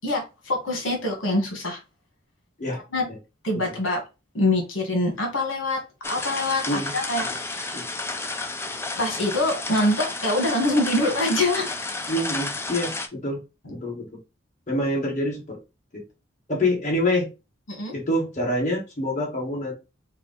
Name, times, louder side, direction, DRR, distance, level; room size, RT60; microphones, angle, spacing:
voice 1, 0.0-1.8 2.9-3.0 3.4-4.0 4.3-5.8 6.1-7.8 9.0-11.7 13.6-13.8 17.7-17.9, left 1 dB, 80° left, 1 dB, 1.4 m, -24 dB
sound 1, 6.0-13.1, left 3 dB, 15° left, 0.4 m, -31 dB
voice 2, 12.1-13.4 13.7-14.1 14.7-15.6 15.9-16.0 16.5-17.3 17.9-19.7, left 1 dB, 40° left, -2 dB, 1.6 m, -26 dB
4.6 x 2.0 x 4.0 m, 0.27 s
head